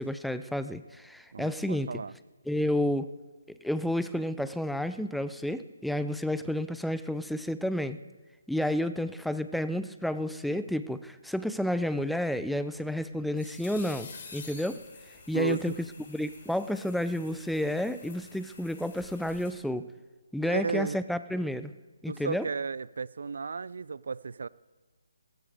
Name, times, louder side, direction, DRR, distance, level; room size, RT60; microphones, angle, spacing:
voice 1, 0.0-1.9 2.5-3.1 3.5-8.0 8.5-14.8 15.3-15.7 16.1-19.9 20.3-21.7 22.0-22.5, left 1 dB, ahead, 0.4 m, -31 dB
voice 2, 1.3-2.1 15.3-15.8 20.4-21.0 22.1-24.5, right 5 dB, 65° right, 0.4 m, -33 dB
sound 1, 12.8-19.5, left 4 dB, 40° left, 3.5 m, -49 dB
16.0 x 14.0 x 4.9 m
figure-of-eight pair, 145°, 0 cm